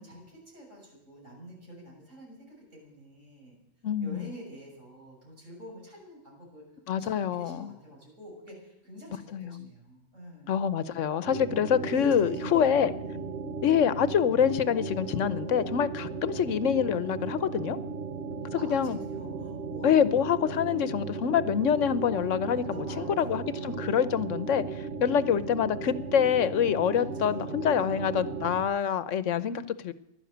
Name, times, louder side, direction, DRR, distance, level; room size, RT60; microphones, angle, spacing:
voice 1, 0.0-3.6 4.0-6.6 6.9-10.6 11.7-13.3 18.5-20.1 22.7-24.0 25.1-25.5 26.9-27.9 28.7-29.1, equal, 85° right, -2 dB, 7.4 m, -48 dB
voice 2, 3.8-4.3 6.9-7.7 9.3-9.7 10.5-12.9 13.6-17.8 18.7-19.0 19.8-22.7 23.0-29.9, left 8 dB, 80° left, 15 dB, 1.1 m, -26 dB
sound 1, 11.3-28.6, right 5 dB, 60° right, 1.5 m, -36 dB
15.5 x 12.0 x 8.0 m, 0.82 s
omnidirectional pair, 1.3 m